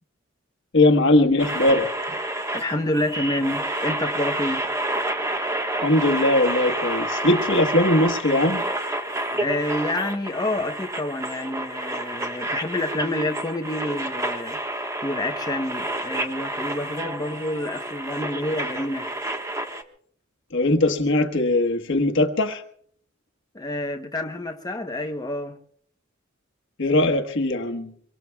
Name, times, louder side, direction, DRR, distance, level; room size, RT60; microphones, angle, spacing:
voice 1, 0.7-1.9 5.8-8.6 20.5-22.6 26.8-27.9, left 1 dB, 65° left, 1.3 m, -20 dB
sound 1, 1.4-19.8, right 1 dB, 15° right, 1.3 m, -29 dB
voice 2, 2.5-4.7 9.3-14.6 15.0-19.1 23.5-25.6, left 1 dB, 20° left, 0.9 m, -28 dB
25.0 x 23.0 x 2.3 m
head